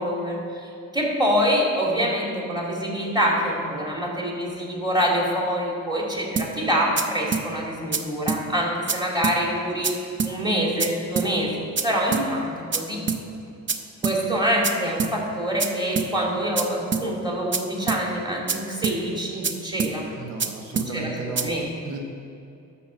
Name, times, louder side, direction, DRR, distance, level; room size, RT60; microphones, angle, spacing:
voice 1, 0.0-9.9 10.2-13.0 14.0-20.1 20.7-21.1 21.4-21.7, equal, 15° right, -3 dB, 2.5 m, -25 dB
sound 1, 6.4-6.5 7.0-7.1 7.3-7.5 7.9-8.0 8.3-8.4 8.9-9.0 9.2-9.4 9.8-9.9 10.2-10.3 10.8-10.9 11.2-11.3 11.8-11.9 12.1-12.3 12.7-12.8 13.1-13.2 13.7-13.8 14.0-14.2 14.6-14.7 15.0-15.1 15.6-15.7 16.0-16.1 16.6-16.7 16.9-17.1 17.5-17.6 17.9-18.0 18.5-18.6 18.8-19.0 19.4-19.5 19.8-19.9 20.4-20.5 20.8-20.9 21.4-21.5, right 5 dB, 40° right, 0.7 m, -25 dB
voice 2, 20.1-21.5 21.8-22.0, right 3 dB, 85° right, 2 dB, 1.1 m, -34 dB
11.5 x 4.3 x 7.1 m, 2.7 s
cardioid pair, 90°, 30 cm